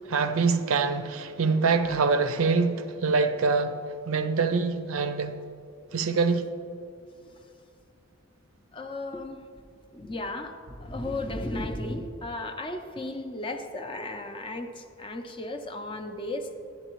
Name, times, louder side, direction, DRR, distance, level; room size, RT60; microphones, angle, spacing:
voice 1, 0.1-3.8 4.1-5.3 5.9-6.5, right 4 dB, 65° right, 0.5 m, -25 dB
voice 2, 8.7-9.4 9.9-16.6, left 2 dB, 25° left, 0.5 m, -35 dB
11.0 x 10.5 x 3.0 m
head